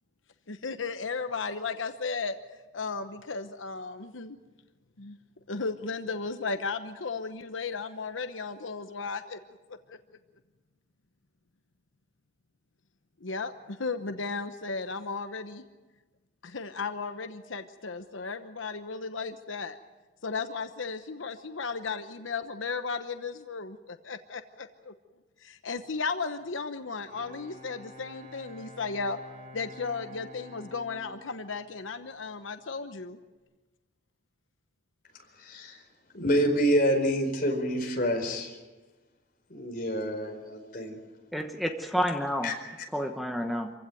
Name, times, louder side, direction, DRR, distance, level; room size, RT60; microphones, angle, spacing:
voice 1, 0.5-2.4 2.7-4.4 5.0-5.2 5.5-9.4 13.2-15.6 16.4-19.8 20.2-24.9 25.4-29.2 29.5-33.2, left 4 dB, 85° left, 9 dB, 1.0 m, -35 dB
Bowed string instrument, 26.8-32.6, left 1 dB, 40° right, 3.9 m, -50 dB
voice 2, 35.4-35.8 36.1-38.6 39.5-41.0 42.4-42.6, equal, 45° left, 3 dB, 4.6 m, -27 dB
voice 3, 41.3-42.5 42.9-43.7, equal, ahead, 3 dB, 1.2 m, -29 dB
26.5 x 16.0 x 9.3 m, 1.2 s
head